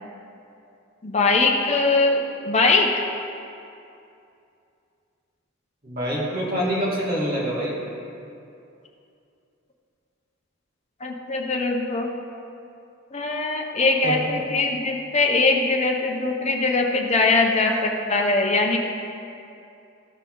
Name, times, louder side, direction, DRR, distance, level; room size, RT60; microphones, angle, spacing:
voice 1, 1.0-2.9 11.0-12.1 13.1-18.9, left 3 dB, 35° left, 1 dB, 0.8 m, -21 dB
voice 2, 5.8-7.8 14.0-14.3, equal, 45° right, -6 dB, 2.1 m, -25 dB
14.0 x 5.6 x 3.9 m, 2.6 s
head